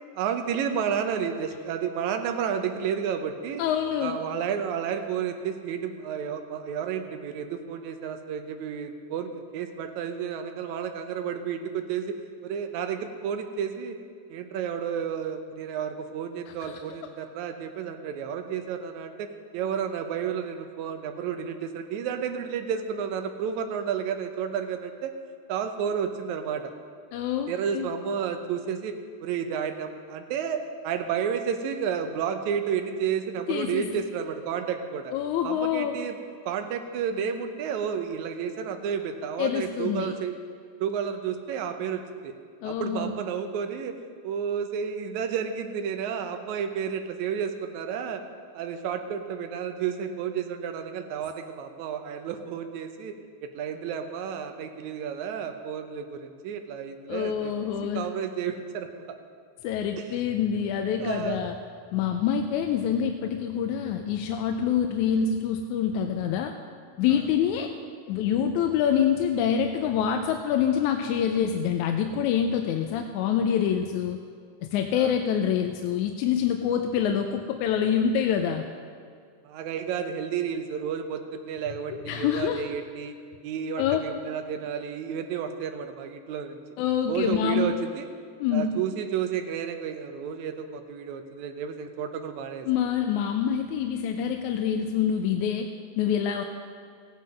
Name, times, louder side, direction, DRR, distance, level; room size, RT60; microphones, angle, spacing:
voice 1, 0.1-3.6 4.0-12.2 12.4-14.0 14.3-19.3 19.5-25.1 25.5-26.6 27.5-29.0 29.2-35.1 35.4-36.2 36.5-40.3 40.8-42.3 42.6-43.9 44.2-48.2 48.5-53.1 53.5-57.5 57.9-58.9 60.0-60.1 61.0-61.4 74.9-75.2 79.4-83.1 83.4-86.6 87.1-88.1 88.5-92.7, right 7 dB, 75° right, 5 dB, 2.1 m, -31 dB
voice 2, 3.6-4.2 16.6-16.8 27.1-27.9 33.5-33.9 35.1-36.0 39.4-40.1 42.6-43.1 57.1-58.1 59.6-61.6 61.9-66.5 67.0-67.7 68.1-74.2 74.6-78.6 81.9-82.7 83.8-84.0 86.8-87.8 88.4-88.7 92.7-96.4, left 8 dB, 85° left, 5 dB, 2.0 m, -26 dB
16.0 x 9.6 x 5.2 m, 2.1 s
omnidirectional pair, 3.5 m